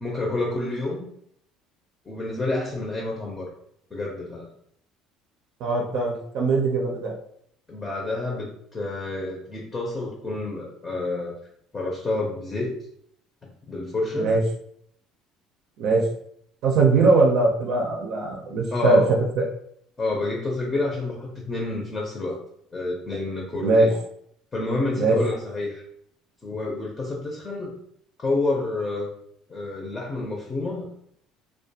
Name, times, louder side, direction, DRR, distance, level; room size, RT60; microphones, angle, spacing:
voice 1, 0.0-1.1 2.1-3.5 3.9-4.5 7.7-11.3 11.7-12.7 13.7-14.3 18.7-19.2 20.0-22.4 22.7-24.0 24.5-25.8 26.4-27.8 28.2-29.1 29.5-30.8, left 2 dB, 20° left, -1 dB, 0.6 m, -29 dB
voice 2, 5.6-7.1 14.2-14.4 15.8-16.0 16.6-19.0 19.4-19.5 23.6-23.9 25.0-25.2, right 3 dB, 65° right, 0 dB, 0.5 m, -20 dB
2.4 x 2.2 x 2.7 m, 0.67 s
cardioid pair, 125°, 0 cm